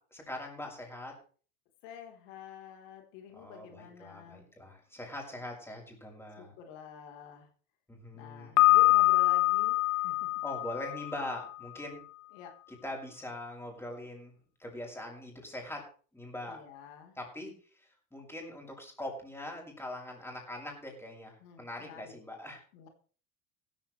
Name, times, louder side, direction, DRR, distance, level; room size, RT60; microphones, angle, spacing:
voice 1, 0.1-1.1 3.3-6.5 7.9-8.9 10.4-12.0 12.8-14.3 14.6-15.8 16.1-16.6 17.2-22.6, left 1 dB, 5° left, 0 dB, 6.7 m, -42 dB
voice 2, 1.8-4.5 6.4-7.5 8.1-9.8 10.0-10.3 12.3-12.5 16.4-17.2 21.4-22.2 22.7-22.9, left 8 dB, 85° left, 3 dB, 3.9 m, -49 dB
Piano, 8.6-11.5, left 19 dB, 50° left, 1.5 m, -25 dB
16.5 x 14.5 x 3.3 m, 0.42 s
supercardioid pair, 120°, 38 cm